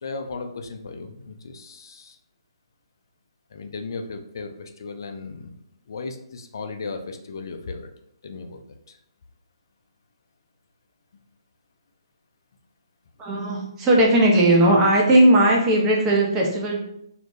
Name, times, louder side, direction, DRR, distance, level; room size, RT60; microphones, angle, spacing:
voice 1, 0.0-2.2 3.5-5.6 5.9-7.9 8.2-8.6 8.9-9.0, left 4 dB, 50° left, 6 dB, 0.3 m, -36 dB
voice 2, 13.2-16.8, right 1 dB, 15° right, -2 dB, 0.5 m, -17 dB
2.2 x 2.1 x 2.7 m, 0.75 s
figure-of-eight pair, 135°, 3 cm